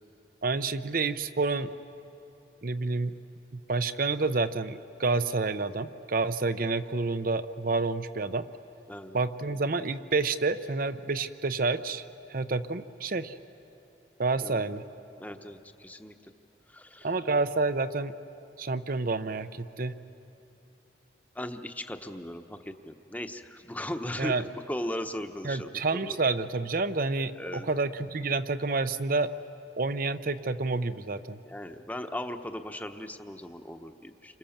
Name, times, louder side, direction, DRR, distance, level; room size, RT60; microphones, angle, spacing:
voice 1, 0.4-1.7 2.6-3.1 3.5-8.5 9.1-13.4 14.2-14.8 17.0-18.1 18.6-19.9 24.2-24.5 25.4-29.3 29.8-31.4, right 3 dB, 55° right, 11 dB, 0.8 m, -29 dB
voice 2, 8.9-9.2 14.4-14.7 15.2-16.1 16.7-17.1 21.3-24.3 24.7-26.2 27.4-27.8 31.5-34.4, left 1 dB, 10° left, 7 dB, 1.0 m, -38 dB
29.5 x 26.0 x 7.3 m, 2.9 s
head